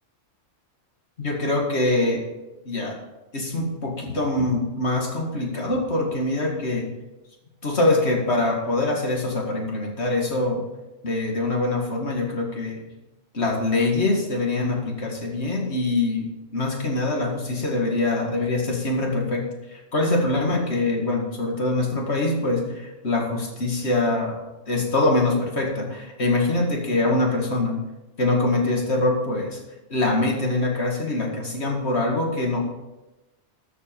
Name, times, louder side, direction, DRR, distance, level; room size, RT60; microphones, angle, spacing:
voice 1, 1.2-2.2 2.7-3.0 3.3-6.9 7.6-10.6 11.0-12.8 13.3-24.4 24.7-27.8 28.2-29.6 29.9-32.6, left 2 dB, 55° left, 0 dB, 2.4 m, -24 dB
13.0 x 7.8 x 5.3 m, 1.0 s
omnidirectional pair, 1.3 m